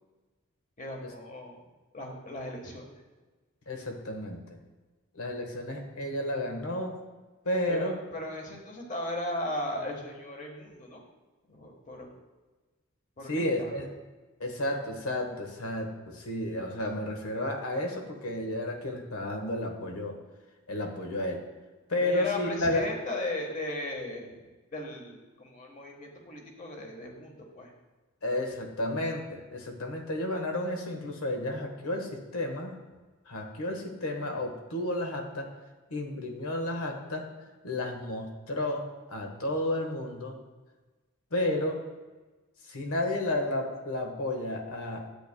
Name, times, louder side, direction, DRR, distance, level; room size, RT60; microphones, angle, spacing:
voice 1, 0.8-1.5 1.9-2.9 7.7-11.0 11.5-12.1 13.2-13.7 22.0-24.5 24.7-27.7, left 1 dB, 35° left, 1 dB, 1.3 m, -36 dB
voice 2, 3.7-4.4 5.1-7.0 7.4-8.0 13.3-13.9 14.4-20.1 20.7-21.4 21.9-22.9 28.2-32.7 33.3-35.5 35.9-37.3 37.6-40.4 41.3-41.8 42.7-45.1, left 1 dB, 85° left, 3 dB, 1.3 m, -32 dB
11.5 x 8.5 x 2.2 m, 1.3 s
head